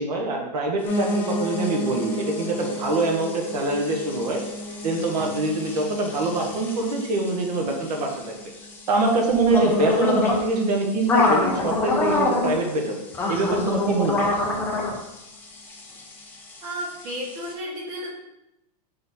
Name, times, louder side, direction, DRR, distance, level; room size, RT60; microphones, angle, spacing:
voice 1, 0.0-4.4 4.8-8.4 8.9-13.0 13.3-14.3, right 2 dB, 70° right, 0 dB, 1.4 m, -24 dB
Piano, 0.8-9.9 10.3-11.5 11.8-11.9 12.1-12.2 12.5-12.6 13.1-13.2, left 1 dB, 25° left, 1.8 m, -33 dB
sound 1, 0.9-17.5, left 2 dB, 10° left, 0.7 m, -28 dB
voice 2, 16.6-18.1, equal, 30° right, -4 dB, 1.9 m, -32 dB
5.4 x 4.1 x 4.2 m, 0.89 s
supercardioid pair, 160°, 21 cm